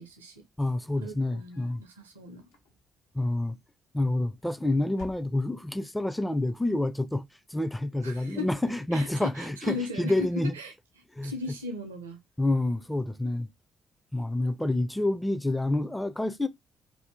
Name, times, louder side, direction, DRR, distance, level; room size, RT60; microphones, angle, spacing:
voice 1, 0.0-0.4 1.0-2.5 8.0-8.5 8.9-10.7 11.2-12.2, left 3 dB, 80° right, 0.5 m, -38 dB
voice 2, 0.6-1.8 3.1-3.6 3.9-7.3 7.5-10.5 11.2-11.3 12.4-13.5 14.1-16.5, left 2 dB, 10° left, 0.4 m, -28 dB
sound 1, 0.8-1.9 2.4-3.1 4.0-4.5 4.9-5.8, left 3 dB, 75° left, 0.7 m, -52 dB
2.6 x 2.6 x 3.3 m
figure-of-eight pair, 40°, 0 cm